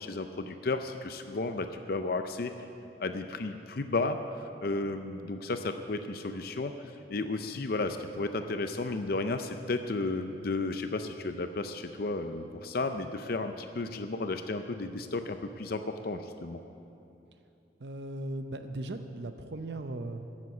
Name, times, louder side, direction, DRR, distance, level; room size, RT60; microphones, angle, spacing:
voice 1, 0.0-2.5 3.0-4.2 4.6-16.6, left 3 dB, 55° left, 7 dB, 0.6 m, -33 dB
voice 2, 17.8-20.3, right 1 dB, 70° right, 8 dB, 0.7 m, -38 dB
14.0 x 7.5 x 8.3 m, 2.8 s
head